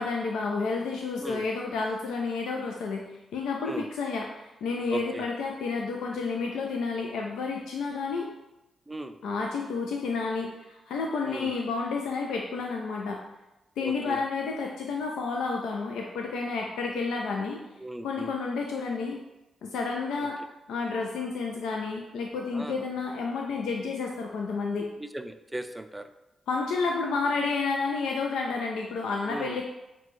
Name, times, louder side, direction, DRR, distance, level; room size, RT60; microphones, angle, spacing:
voice 1, 0.0-8.3 9.2-13.2 13.8-17.6 18.0-19.2 19.6-20.4 20.7-24.9 26.5-29.6, left 4 dB, 85° left, 0 dB, 0.4 m, -30 dB
voice 2, 4.9-5.3 8.9-9.1 11.3-11.5 13.8-14.2 17.8-18.3 22.5-22.7 25.0-26.1 29.3-29.6, right 1 dB, 10° right, 9 dB, 0.3 m, -36 dB
5.8 x 2.2 x 3.1 m, 0.96 s
supercardioid pair, 55°, 0 cm